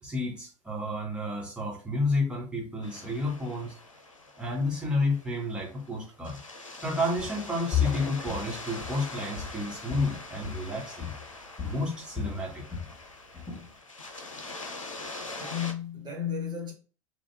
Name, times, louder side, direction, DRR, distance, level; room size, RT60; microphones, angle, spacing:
voice 1, 0.0-3.7 4.4-6.4 6.8-11.1 11.6-12.6, left 2 dB, 5° right, 2.0 m, -31 dB
sound 1, 2.8-15.7, left 2 dB, 80° left, 0.7 m, -43 dB
Walk footsteps, 7.2-7.5 7.7-10.8 11.0-11.3 11.6-13.0 13.3-13.7, left 9 dB, 15° left, 2.4 m, -34 dB
voice 2, 15.4-16.7, left 8 dB, 25° right, 2.0 m, -33 dB
4.3 x 3.0 x 3.5 m
figure-of-eight pair, 80°, 17 cm